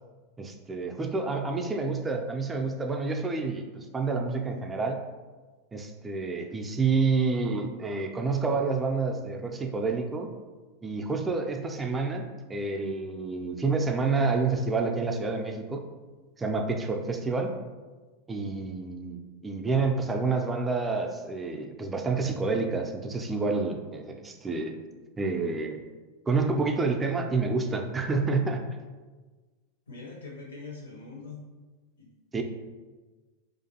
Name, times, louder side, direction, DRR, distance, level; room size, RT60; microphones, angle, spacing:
voice 1, 0.4-5.0 5.7-10.3 10.8-15.8 16.4-17.5 18.3-24.8 25.2-25.8 26.3-28.7 32.3-32.4, right 4 dB, 20° right, 4 dB, 0.3 m, -28 dB
voice 2, 29.9-31.4 32.0-32.1, left 3 dB, 80° left, -2 dB, 0.7 m, -43 dB
2.4 x 2.2 x 2.7 m, 1.3 s
hypercardioid pair, 95°, 0 cm